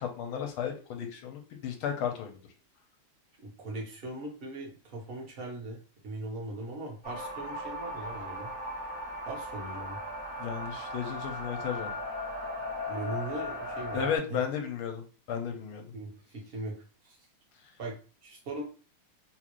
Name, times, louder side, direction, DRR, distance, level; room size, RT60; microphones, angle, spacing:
voice 1, 0.0-2.4 10.4-11.9 13.9-15.0 15.3-15.9, left 7 dB, 80° left, 4 dB, 1.5 m, -34 dB
voice 2, 3.4-8.5 9.3-10.0 12.9-14.4 15.9-17.2 17.8-18.6, right 2 dB, 40° right, -1 dB, 0.9 m, -40 dB
sound 1, 7.0-14.2, left 1 dB, 10° right, 0.5 m, -37 dB
3.8 x 2.5 x 3.0 m, 0.36 s
omnidirectional pair, 2.3 m